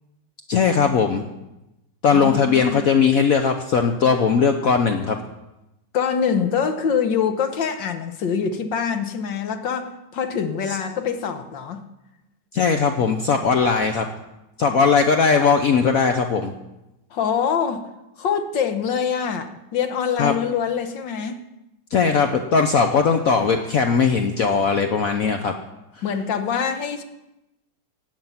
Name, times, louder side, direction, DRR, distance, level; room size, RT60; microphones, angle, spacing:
voice 1, 0.5-1.2 2.0-5.2 12.5-14.1 14.6-16.5 20.2-20.3 21.9-25.5, left 5 dB, 55° left, 5 dB, 1.2 m, -19 dB
voice 2, 2.1-2.8 5.9-11.8 17.1-17.8 18.2-21.4 26.0-27.0, left 7 dB, 80° left, 7 dB, 1.9 m, -24 dB
16.5 x 9.6 x 5.8 m, 0.93 s
omnidirectional pair, 2.0 m